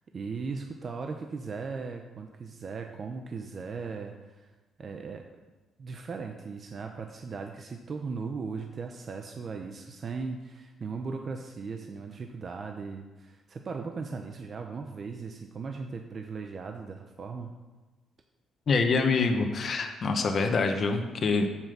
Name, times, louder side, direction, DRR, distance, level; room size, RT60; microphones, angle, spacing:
voice 1, 0.1-4.5 4.8-5.2 5.8-17.5, right 4 dB, 45° right, 4 dB, 0.8 m, -38 dB
voice 2, 18.7-21.5, left 4 dB, 50° left, 5 dB, 1.2 m, -25 dB
7.5 x 7.5 x 6.8 m, 1.2 s
cardioid pair, 90°, 0 cm